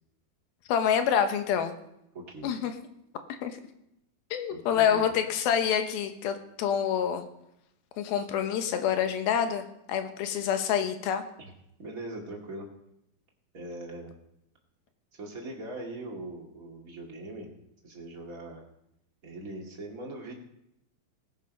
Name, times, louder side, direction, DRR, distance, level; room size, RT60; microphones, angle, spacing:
voice 1, 0.7-1.7 2.4-2.7 3.3-3.6 4.3-7.3 8.0-11.2, left 8 dB, 80° left, 7 dB, 2.9 m, -27 dB
voice 2, 2.1-2.5 4.5-5.1 11.4-11.5 11.8-12.7 13.5-14.1 15.2-17.5 17.8-18.6 19.2-20.3, right 2 dB, 30° right, -1 dB, 2.0 m, -41 dB
18.5 x 7.3 x 5.3 m, 0.82 s
omnidirectional pair, 4.3 m